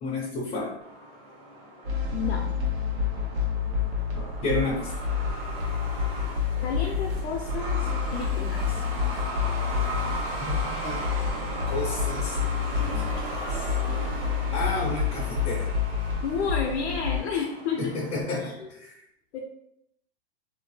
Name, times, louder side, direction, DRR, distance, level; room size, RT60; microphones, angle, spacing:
voice 1, 0.0-0.7 4.2-4.9 10.4-11.0 11.7-12.4 12.7-13.0 13.4-13.7 14.5-15.7 17.8-18.9, left 2 dB, 25° left, -4 dB, 0.5 m, -31 dB
Truck, 0.8-18.2, right 1 dB, 60° right, 1.1 m, -37 dB
sound 1, 1.8-17.2, left 6 dB, 80° right, 1.1 m, -29 dB
voice 2, 2.1-2.5 6.6-8.8 16.2-18.0 18.4-18.7 19.3-19.4, left 6 dB, 75° left, 0 dB, 0.6 m, -31 dB
2.7 x 2.1 x 3.0 m, 0.77 s
hypercardioid pair, 130°, 32 cm